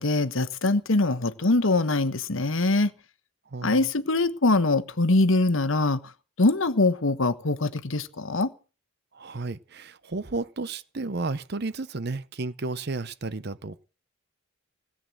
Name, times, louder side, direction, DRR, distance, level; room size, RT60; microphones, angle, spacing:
voice 1, 0.0-2.9 3.6-6.0 6.4-8.5, left 2 dB, 65° left, 1.2 m, -23 dB
voice 2, 3.5-3.9 9.1-13.8, right 3 dB, 50° right, 0.8 m, -33 dB
17.5 x 8.7 x 7.6 m
head